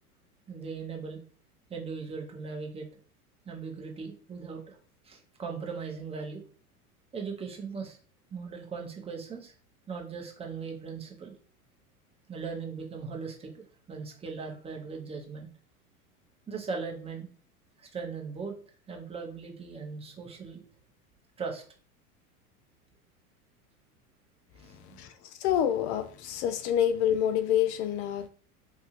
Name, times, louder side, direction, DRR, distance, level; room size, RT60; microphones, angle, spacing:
voice 1, 0.5-1.2 1.7-2.9 3.5-4.8 5.0-6.4 7.1-8.0 8.3-9.5 9.9-11.4 12.3-15.5 16.5-17.3 17.8-18.5 18.9-20.6 21.4-21.6 24.6-25.0, right 5 dB, 15° right, 0.6 m, -39 dB
voice 2, 25.4-28.3, left 10 dB, 50° left, 0.5 m, -27 dB
2.8 x 2.7 x 2.4 m
hypercardioid pair, 95°, 45 cm